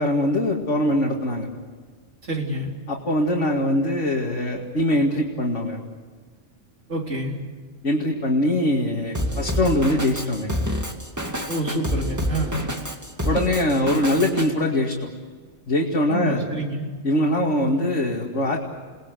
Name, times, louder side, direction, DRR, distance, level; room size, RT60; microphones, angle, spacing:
voice 1, 0.0-1.5 2.9-5.8 7.8-10.5 13.2-14.9 15.7-16.4 17.0-18.6, left 1 dB, 85° left, -2 dB, 2.6 m, -22 dB
voice 2, 2.2-2.7 6.9-7.4 11.5-12.6 16.1-16.9 17.6-17.8, right 1 dB, 80° right, 0 dB, 4.3 m, -28 dB
Drum kit, 9.1-14.5, equal, 15° right, 2.4 m, -27 dB
29.5 x 19.5 x 8.2 m, 1.5 s
omnidirectional pair, 1.2 m